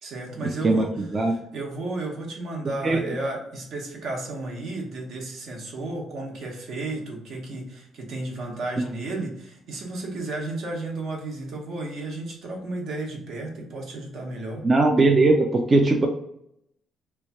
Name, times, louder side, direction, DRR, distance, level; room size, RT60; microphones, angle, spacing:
voice 1, 0.0-0.9 1.3-14.7, right 2 dB, 65° right, 0 dB, 1.0 m, -33 dB
voice 2, 0.6-1.4 2.8-3.1 9.1-9.2 14.6-16.1, right 2 dB, 25° right, 2 dB, 0.3 m, -20 dB
3.1 x 2.3 x 4.0 m, 0.76 s
cardioid pair, 140°, 0 cm